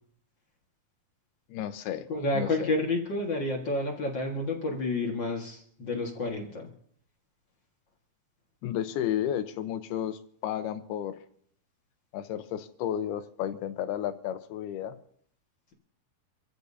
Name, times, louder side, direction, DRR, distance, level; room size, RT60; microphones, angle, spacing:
voice 1, 1.5-2.1 2.3-2.7 8.6-11.2 12.1-15.0, left 10 dB, 85° left, 10 dB, 2.9 m, -32 dB
voice 2, 2.1-6.7, left 2 dB, 45° left, 0 dB, 1.5 m, -30 dB
26.5 x 15.0 x 2.7 m, 0.62 s
omnidirectional pair, 4.4 m